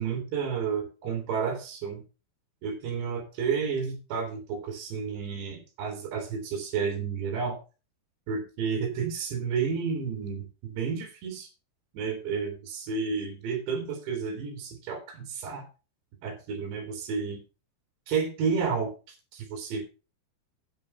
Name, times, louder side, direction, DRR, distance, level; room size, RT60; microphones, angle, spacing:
voice 1, 0.0-2.0 2.6-7.6 8.3-11.5 11.9-15.6 16.2-17.4 18.1-19.8, right 6 dB, 70° right, 3 dB, 4.3 m, -31 dB
9.7 x 7.4 x 5.3 m, 0.32 s
omnidirectional pair, 5.4 m